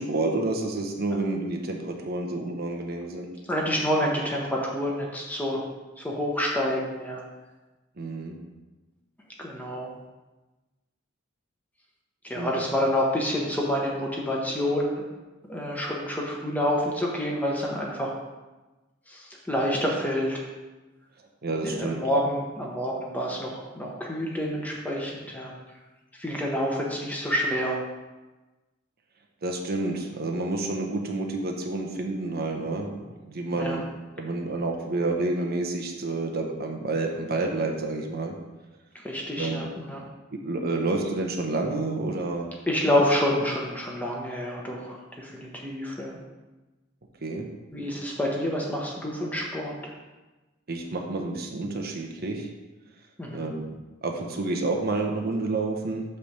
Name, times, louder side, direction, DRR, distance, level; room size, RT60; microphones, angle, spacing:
voice 1, 0.0-3.3 8.0-8.4 12.3-12.6 21.4-22.0 29.4-32.9 33.2-33.8 34.2-38.4 39.4-39.7 40.4-42.5 47.2-47.5 50.7-52.5 53.3-56.0, right 2 dB, 50° right, 2 dB, 0.9 m, -29 dB
voice 2, 3.5-5.6 6.0-7.2 9.4-9.9 12.3-15.0 15.5-18.1 19.1-20.4 21.6-25.5 26.2-27.8 33.5-33.8 39.0-40.0 42.7-46.2 47.7-49.9 53.2-53.4, equal, 10° left, -2 dB, 1.1 m, -28 dB
8.5 x 3.4 x 6.6 m, 1.2 s
head